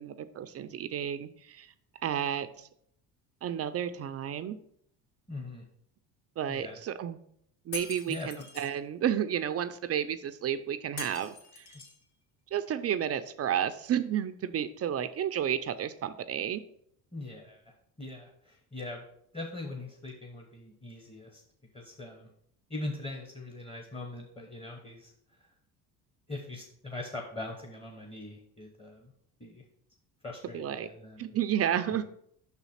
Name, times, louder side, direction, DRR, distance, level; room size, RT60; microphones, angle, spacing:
voice 1, 0.0-1.7 2.0-2.7 3.4-4.6 6.4-7.2 7.7-11.7 12.5-16.6 30.5-30.9 31.2-32.1, right 9 dB, 35° right, 11 dB, 0.4 m, -31 dB
voice 2, 5.3-5.6 6.5-6.8 8.1-8.4 17.1-19.0 19.3-21.4 21.7-22.3 22.7-25.1 26.3-29.1 29.4-29.6 30.2-31.4, left 2 dB, 15° left, 2 dB, 0.9 m, -41 dB
Shatter, 7.7-8.7 11.0-12.0, left 4 dB, 60° left, 1.5 m, -43 dB
5.7 x 4.1 x 5.6 m, 0.69 s
cardioid pair, 105°, 44 cm